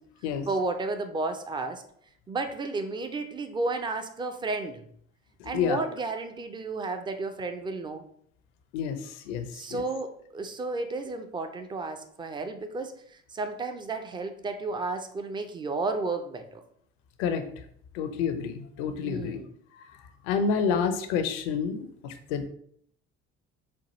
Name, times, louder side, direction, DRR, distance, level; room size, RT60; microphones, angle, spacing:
voice 1, 0.5-1.8 2.3-4.9 5.4-8.0 9.5-16.6 19.0-19.5, right 3 dB, 15° right, 7 dB, 0.4 m, -32 dB
voice 2, 5.4-5.8 8.7-9.0 9.3-9.8 17.2-17.4 17.9-19.4 20.3-22.5, left 6 dB, 60° left, 8 dB, 0.5 m, -29 dB
4.4 x 2.3 x 2.9 m, 0.65 s
figure-of-eight pair, 55°, 35 cm